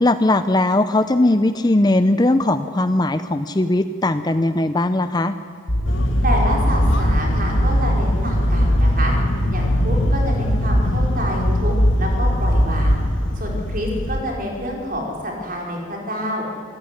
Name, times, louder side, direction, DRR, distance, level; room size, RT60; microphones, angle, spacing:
voice 1, 0.0-5.3, left 2 dB, 20° left, 11 dB, 0.5 m, -19 dB
sound 1, 5.7-13.1, equal, 85° left, 7.0 m, -20 dB
sound 2, 5.9-14.2, left 1 dB, 65° left, 1.9 m, -25 dB
voice 2, 6.2-9.1 9.5-13.0 13.3-16.4, equal, 40° right, 0 dB, 5.0 m, -27 dB
26.0 x 14.5 x 9.9 m, 2.4 s
head